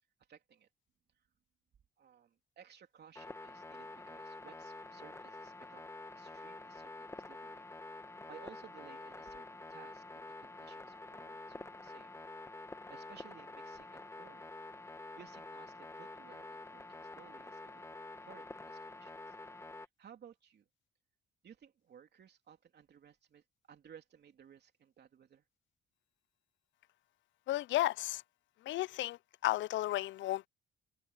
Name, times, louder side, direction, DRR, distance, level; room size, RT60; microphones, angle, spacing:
voice 1, 0.3-0.7 1.2-1.3 2.0-7.7 8.0-12.1 12.6-14.5 14.8-19.4 19.8-20.7 21.4-25.4, right 8 dB, 55° right, 3.3 m, -59 dB
sound 1, 3.2-19.9, left 2 dB, 15° left, 1.4 m, -48 dB
voice 2, 27.5-28.2 28.7-29.2 29.4-30.5, left 16 dB, 70° left, 0.4 m, -33 dB
cardioid pair, 90°, 20 cm